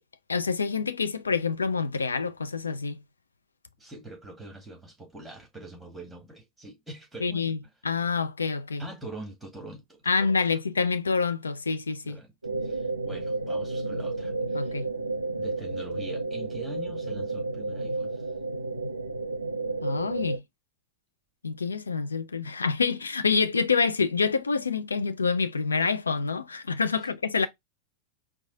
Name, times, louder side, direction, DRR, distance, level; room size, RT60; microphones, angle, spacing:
voice 1, 0.3-3.0 7.2-7.6 7.8-8.8 10.1-12.2 14.5-14.9 19.8-20.4 21.4-27.5, left 5 dB, 75° left, 0.5 m, -27 dB
voice 2, 3.8-7.5 8.8-10.3 12.0-12.3 12.6-14.8 15.4-18.2 27.0-27.1, right 2 dB, 5° right, 1.9 m, -44 dB
sound 1, 12.4-20.4, right 3 dB, 85° right, 0.5 m, -32 dB
4.7 x 2.2 x 3.7 m
figure-of-eight pair, 90°, 0 cm